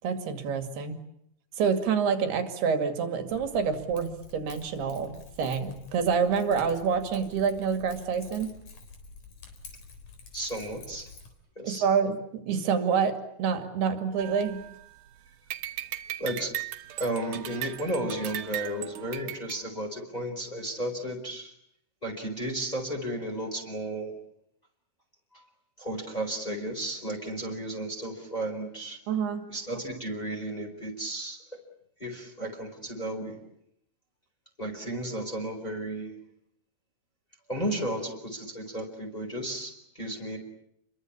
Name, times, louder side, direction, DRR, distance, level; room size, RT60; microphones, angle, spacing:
voice 1, 0.0-1.0 1.6-8.5 11.6-14.6 29.1-29.4, right 6 dB, 90° right, 8 dB, 4.4 m, -27 dB
Keys jangling, 3.3-11.3, left 4 dB, 50° left, 5.1 m, -49 dB
voice 2, 10.3-11.1 11.6-11.8 16.2-16.5 17.0-21.5 22.0-24.1 25.3-25.4 25.8-29.0 29.5-31.4 32.0-33.4 34.6-36.1 37.5-40.4, right 1 dB, 10° left, 1 dB, 4.5 m, -33 dB
sound 1, 14.2-15.1 15.5-19.6, right 13 dB, 70° right, 2.9 m, -37 dB
29.0 x 23.0 x 8.7 m, 0.74 s
omnidirectional pair, 4.5 m